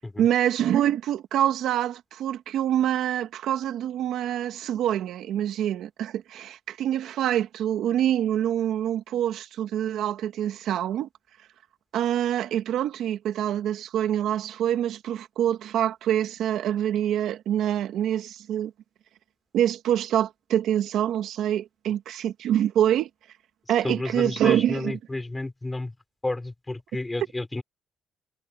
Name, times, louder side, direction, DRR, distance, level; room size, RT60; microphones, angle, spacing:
voice 1, 0.2-11.1 11.9-18.7 19.5-23.1 23.7-25.0, right 11 dB, 80° right, 2.0 m, -25 dB
voice 2, 23.8-25.9 26.2-27.6, left 2 dB, 15° left, 5.0 m, -31 dB
cardioid pair, 90°, 0 cm